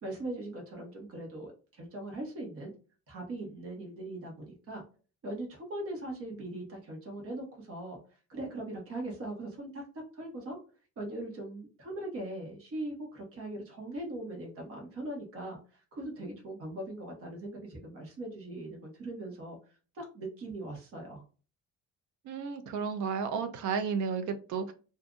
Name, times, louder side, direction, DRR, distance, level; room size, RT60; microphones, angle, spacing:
voice 1, 0.0-2.7 3.1-4.8 5.2-8.0 8.3-9.8 10.1-10.6 11.0-19.6 19.9-21.2, right 1 dB, 50° right, 0 dB, 1.2 m, -40 dB
voice 2, 22.2-24.7, right 6 dB, 80° right, 8 dB, 0.6 m, -32 dB
2.6 x 2.4 x 3.7 m, 0.36 s
cardioid pair, 165°, 29 cm